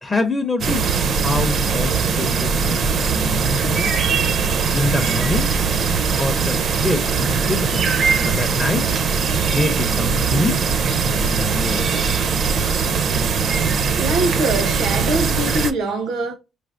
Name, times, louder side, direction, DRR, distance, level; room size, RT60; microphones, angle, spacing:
voice 1, 0.0-4.0 4.7-5.6 6.1-7.9 8.2-9.0 9.4-10.7 11.2-11.9, left 2 dB, 15° left, 0.5 m, -25 dB
sound 1, 0.6-15.7, right 5 dB, 50° right, 0.4 m, -20 dB
voice 2, 14.0-16.3, right 1 dB, 80° right, 0.8 m, -23 dB
5.0 x 3.2 x 2.5 m
cardioid pair, 145°, 0 cm